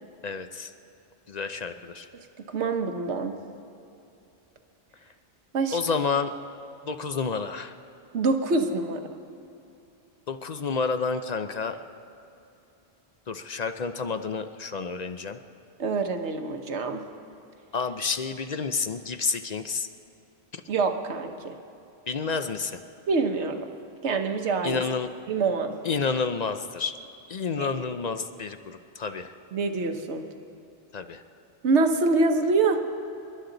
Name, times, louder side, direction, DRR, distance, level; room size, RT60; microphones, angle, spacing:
voice 1, 0.2-0.7 1.3-2.1 5.7-6.3 6.8-7.7 10.3-11.8 13.3-15.4 17.7-19.9 20.5-20.6 22.1-22.8 24.6-25.1 25.8-27.0 27.3-29.3 30.9-31.2, left 5 dB, 45° left, 9 dB, 0.6 m, -29 dB
voice 2, 2.1-3.4 5.5-5.8 8.1-9.0 15.8-17.0 20.7-21.5 23.1-23.6 24.0-24.8 25.3-25.7 27.6-27.9 29.5-30.2 31.6-32.8, right 3 dB, 85° right, 6 dB, 1.3 m, -25 dB
28.0 x 11.5 x 3.9 m, 2.7 s
omnidirectional pair, 1.1 m